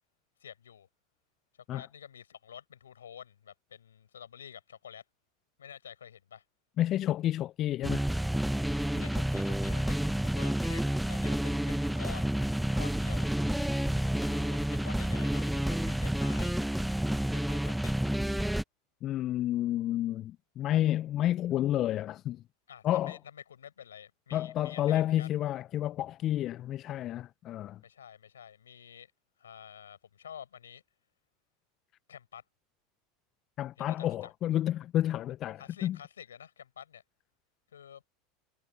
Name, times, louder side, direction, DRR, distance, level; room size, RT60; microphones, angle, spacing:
voice 1, 0.4-0.9 1.7-5.0 5.6-6.4 8.9-12.4 12.8-13.3 14.2-16.6 17.3-17.9 22.7-25.3 27.8-29.1 29.4-30.8 32.1-32.4 33.8-34.3 35.6-37.0 37.7-38.1, left 8 dB, 85° left, 4.6 m, -49 dB
voice 2, 6.8-8.0 19.0-22.4 22.8-23.2 24.3-27.8 33.6-36.0, left 13 dB, 45° left, 0.4 m, -30 dB
sound 1, 7.8-18.6, right 1 dB, ahead, 0.8 m, -30 dB
hypercardioid pair, 85°, 0 cm